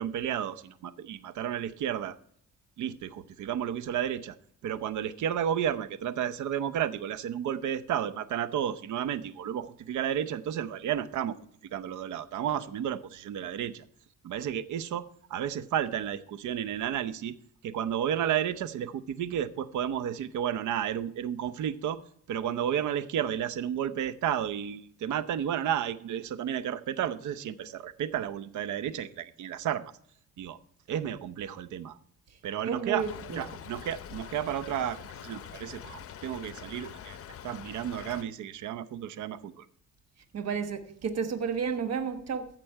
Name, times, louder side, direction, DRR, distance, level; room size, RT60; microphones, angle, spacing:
voice 1, 0.0-2.2 2.8-4.4 4.6-11.4 11.7-13.8 14.2-17.4 17.6-22.0 22.3-29.9 30.4-30.6 30.9-32.0 32.4-37.2 37.4-39.7, right 9 dB, 75° right, 0.8 m, -32 dB
voice 2, 32.6-33.4 40.3-42.5, right 6 dB, 55° right, 1.3 m, -31 dB
Stream / Trickle dribble, 33.0-38.2, left 9 dB, 50° left, 0.8 m, -44 dB
15.0 x 6.1 x 4.6 m
cardioid pair, 90°, 30 cm